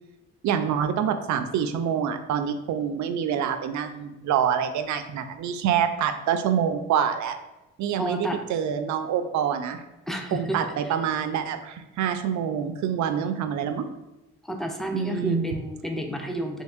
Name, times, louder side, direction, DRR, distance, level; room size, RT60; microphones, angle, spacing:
voice 1, 0.4-7.4 7.8-9.8 10.3-13.9 14.9-15.4, right 8 dB, 70° right, 8 dB, 0.5 m, -26 dB
voice 2, 7.9-8.4 10.1-10.7 14.4-16.6, equal, ahead, 3 dB, 0.5 m, -30 dB
4.5 x 2.8 x 2.4 m, 0.98 s
cardioid pair, 90°, 30 cm